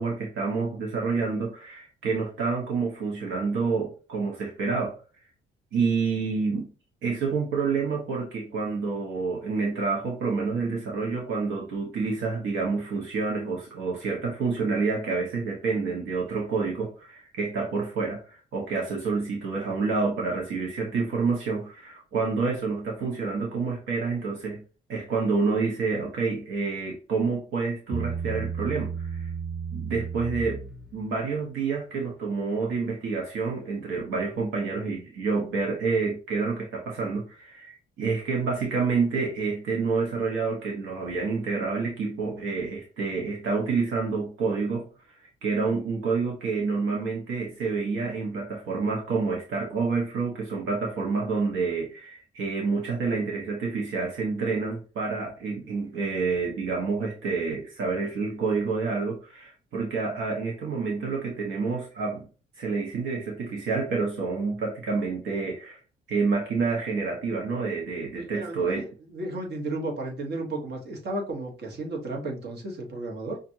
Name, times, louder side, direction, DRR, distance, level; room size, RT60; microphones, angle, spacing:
voice 1, 0.0-4.9 5.7-6.7 7.0-24.6 24.9-29.3 29.7-30.6 30.9-62.3 62.6-65.8 66.1-68.9, right 4 dB, 80° right, 1.1 m, -28 dB
Bass guitar, 27.9-31.3, right 5 dB, ahead, 0.7 m, -33 dB
voice 2, 68.2-73.4, right 2 dB, 60° right, 1.4 m, -33 dB
5.7 x 2.6 x 2.7 m
cardioid pair, 90°, 20 cm